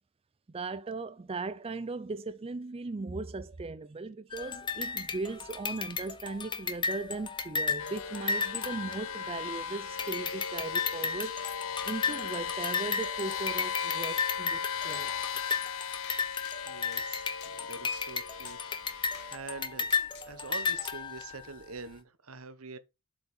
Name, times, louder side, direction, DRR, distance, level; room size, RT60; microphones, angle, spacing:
voice 1, 0.5-15.1, right 3 dB, 25° right, 0.4 m, -38 dB
sound 1, 4.3-9.6 10.0-21.5, left 5 dB, 20° left, 0.7 m, -34 dB
sound 2, 7.8-19.4, left 7 dB, 65° left, 0.5 m, -37 dB
sound 3, 10.8-10.9 11.2-12.2 14.9-15.1 15.5-15.7 16.0-16.2 16.4-17.1 17.4-17.6 17.9-18.1 18.5-18.6 19.1-19.3 19.9-20.3 20.6-20.9, left 7 dB, 50° left, 1.6 m, -50 dB
voice 2, 16.6-20.0 20.2-22.8, right 4 dB, 80° right, 1.0 m, -45 dB
7.6 x 4.8 x 5.3 m
head